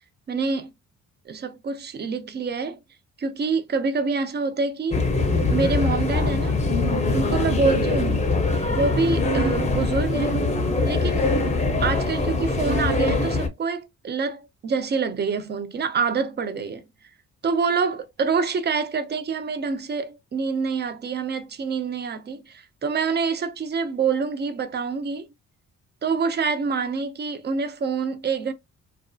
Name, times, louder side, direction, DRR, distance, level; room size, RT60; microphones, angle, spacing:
voice 1, 0.3-0.7 1.3-2.8 3.2-5.0 5.5-6.6 7.1-8.3 8.7-10.3 10.8-11.3 11.8-16.8 17.4-25.3 26.0-28.5, right 5 dB, 35° right, 0.6 m, -26 dB
sound 1, 4.9-13.5, left 3 dB, 20° left, 0.7 m, -23 dB
2.6 x 2.3 x 2.2 m
cardioid pair, 90°, 30 cm